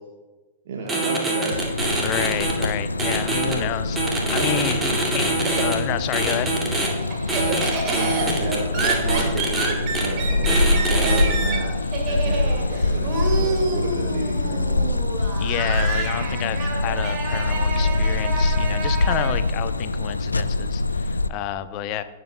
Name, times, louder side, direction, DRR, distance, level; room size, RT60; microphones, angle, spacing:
voice 1, 0.6-1.6 3.4-3.7 4.2-4.5 4.9-5.0 7.9-11.7 12.1-14.9, right 4 dB, 55° right, -1 dB, 1.2 m, -32 dB
sound 1, 0.9-2.7 3.0-3.5 4.0-5.7 6.1-6.9 7.3-9.7 10.0-10.1 10.5-11.2, right 2 dB, 15° right, 2.1 m, -24 dB
sound 2, 1.5-21.3, left 2 dB, 80° left, 0.3 m, -24 dB
voice 2, 2.0-4.8 5.1-6.5 15.4-22.0, left 11 dB, 35° left, 13 dB, 0.6 m, -29 dB
Laughter, 3.9-6.0 6.4-19.3, right 3 dB, 35° right, 2.0 m, -29 dB
17.0 x 7.7 x 2.2 m, 1.2 s
figure-of-eight pair, 100°, 0 cm